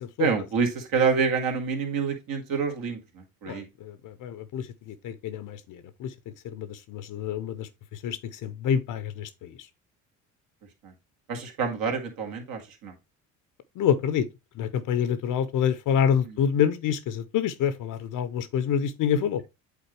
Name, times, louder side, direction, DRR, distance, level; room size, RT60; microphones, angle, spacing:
voice 1, 0.2-3.7 10.8-10.9 11.3-12.9 16.3-16.4, right 5 dB, 65° right, 2.0 m, -27 dB
voice 2, 3.5-6.1 6.4-9.7 13.8-14.3 14.5-19.4, left 8 dB, 55° left, 0.7 m, -27 dB
8.2 x 4.0 x 3.1 m
hypercardioid pair, 65°, 37 cm